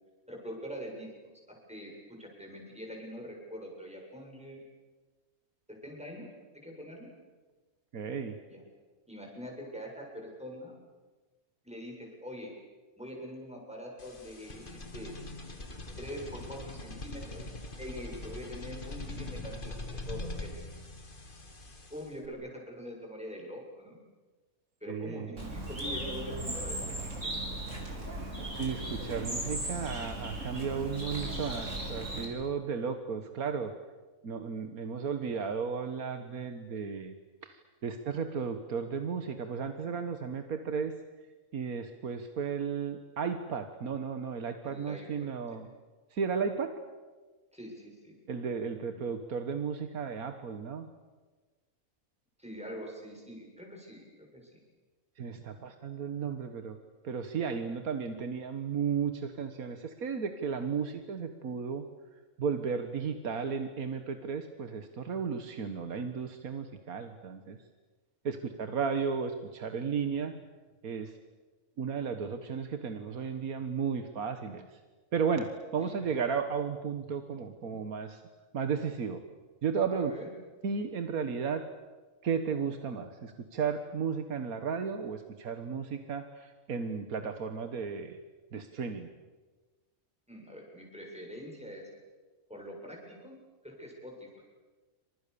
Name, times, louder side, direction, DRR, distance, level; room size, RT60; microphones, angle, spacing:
voice 1, 0.3-1.1 1.5-4.6 5.7-6.3 6.5-7.1 8.5-8.6 9.1-10.7 11.6-12.5 13.0-14.6 14.9-15.1 16.0-17.5 17.8-20.7 21.9-24.0 24.8-26.9 27.2-27.3 44.6-45.6 47.5-48.1 52.4-54.6 75.8-76.1 79.9-80.3 90.3-91.9 92.5-93.4 93.6-94.4, equal, 5° right, -1 dB, 7.4 m, -44 dB
voice 2, 7.9-8.4 24.9-25.3 28.6-33.7 34.2-37.1 37.4-40.9 41.5-45.7 46.1-46.7 48.3-50.9 55.2-56.8 57.0-61.8 62.4-67.6 68.3-70.3 70.8-71.1 71.8-74.8 75.1-78.2 78.5-79.2 79.6-80.1 80.6-81.6 82.2-88.2 88.5-89.1, right 6 dB, 90° right, 7 dB, 1.9 m, -34 dB
sound 1, 14.0-22.3, left 2 dB, 35° left, 2.3 m, -42 dB
Bird, 25.4-32.3, right 1 dB, 60° right, 5.5 m, -37 dB
28.5 x 26.5 x 7.0 m, 1.3 s
omnidirectional pair, 1.5 m